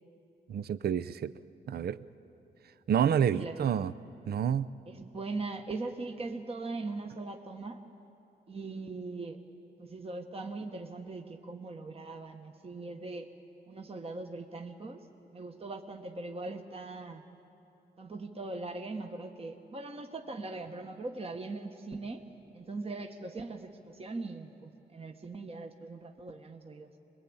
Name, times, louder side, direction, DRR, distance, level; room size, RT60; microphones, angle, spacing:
voice 1, 0.5-1.3 1.7-2.0 2.9-3.9 4.3-4.7, right 8 dB, 60° right, 14 dB, 0.5 m, -28 dB
voice 2, 3.0-3.9 4.9-7.8 8.5-9.4 9.8-13.3 13.7-15.1 15.3-17.2 18.0-22.2 22.5-26.9, right 3 dB, 30° right, 4 dB, 1.2 m, -40 dB
23.5 x 21.0 x 8.7 m, 2.9 s
cardioid pair, 75°, 19 cm